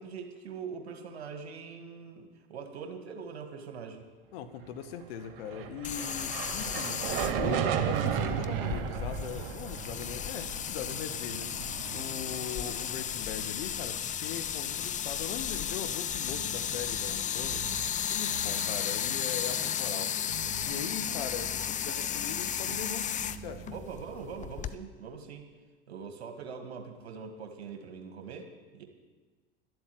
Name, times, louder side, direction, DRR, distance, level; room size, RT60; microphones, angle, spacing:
voice 1, 0.0-4.0 23.7-25.5 25.9-28.8, right 6 dB, 85° right, 5 dB, 1.9 m, -42 dB
voice 2, 4.3-11.5 11.9-17.6 18.1-20.1 20.6-23.7, left 8 dB, 65° left, 9 dB, 1.4 m, -40 dB
sound 1, 5.2-13.6, right 9 dB, 65° right, 1.3 m, -34 dB
sound 2, 5.8-24.8, left 9 dB, 25° left, 0.6 m, -34 dB
sound 3, 15.2-15.5 16.1-17.9 18.2-23.9, right 6 dB, 45° right, 1.6 m, -46 dB
12.5 x 8.0 x 9.2 m, 1.4 s
hypercardioid pair, 85°, 31 cm